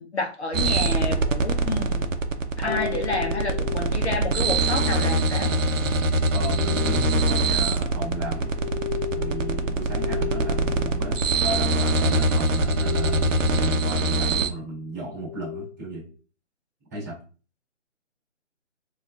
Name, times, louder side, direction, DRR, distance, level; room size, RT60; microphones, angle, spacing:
voice 1, 0.0-2.1 2.6-5.5, left 3 dB, 60° left, 0.6 m, -30 dB
sound 1, 0.5-14.5, right 2 dB, 80° right, 0.6 m, -23 dB
voice 2, 2.6-2.9 6.3-8.5 9.1-13.3 13.5-16.0 16.9-17.2, right 1 dB, 15° right, 1.3 m, -34 dB
sound 2, 2.7-5.1 6.0-12.1 12.4-13.8 14.7-15.9, left 15 dB, 5° left, 1.0 m, -37 dB
3.7 x 2.4 x 2.3 m
hypercardioid pair, 175°, 38 cm